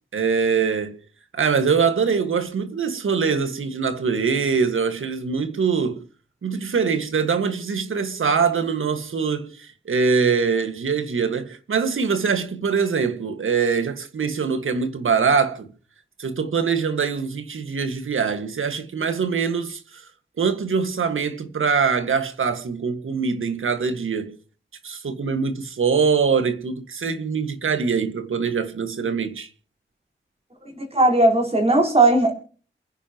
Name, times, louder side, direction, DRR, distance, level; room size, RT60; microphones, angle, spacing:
voice 1, 0.1-1.0 1.3-6.0 6.4-15.7 16.2-20.1 20.4-24.4 24.8-29.5, right 5 dB, 90° right, 1.9 m, -23 dB
voice 2, 30.7-32.3, right 2 dB, 30° right, 4.5 m, -17 dB
29.0 x 10.0 x 3.0 m
wide cardioid pair, 145°, 20 cm